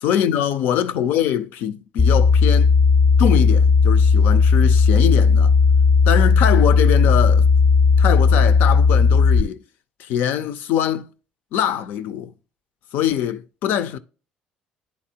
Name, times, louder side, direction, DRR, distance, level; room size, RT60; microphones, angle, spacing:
voice 1, 0.0-2.7 3.2-5.5 6.1-7.5 8.0-9.6 10.0-11.1 11.5-12.3 12.9-14.0, left 10 dB, 75° left, 0.6 m, -23 dB
sound 1, 2.0-9.4, left 5 dB, 25° left, 0.5 m, -15 dB
10.5 x 4.2 x 2.8 m
supercardioid pair, 90°, 3 cm